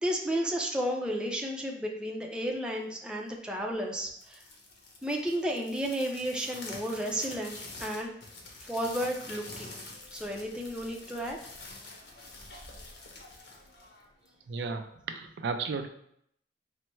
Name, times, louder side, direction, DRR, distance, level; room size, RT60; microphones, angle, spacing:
voice 1, 0.0-4.4 5.0-8.1 8.6-9.7 10.1-11.4, equal, 5° right, -1 dB, 0.5 m, -32 dB
sound 1, 4.1-14.4, left 2 dB, 90° left, 0.9 m, -47 dB
voice 2, 14.5-15.9, right 4 dB, 70° right, 7 dB, 0.4 m, -34 dB
4.4 x 2.0 x 4.4 m, 0.71 s
head